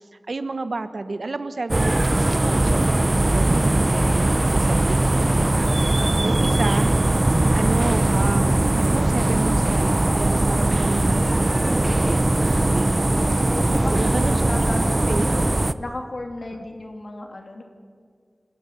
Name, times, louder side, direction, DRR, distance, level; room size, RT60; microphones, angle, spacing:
voice 1, 0.3-6.9 7.5-13.3 13.9-14.7 15.1-15.3, right 3 dB, 75° right, 11 dB, 1.1 m, -31 dB
sound 1, 1.7-15.7, right 1 dB, 35° right, 0.7 m, -20 dB
voice 2, 12.5-12.9 13.5-14.1 14.5-15.5 15.8-17.6, left 2 dB, 65° left, 4 dB, 2.9 m, -34 dB
26.0 x 11.0 x 10.0 m, 2.1 s
wide cardioid pair, 70°, 0 cm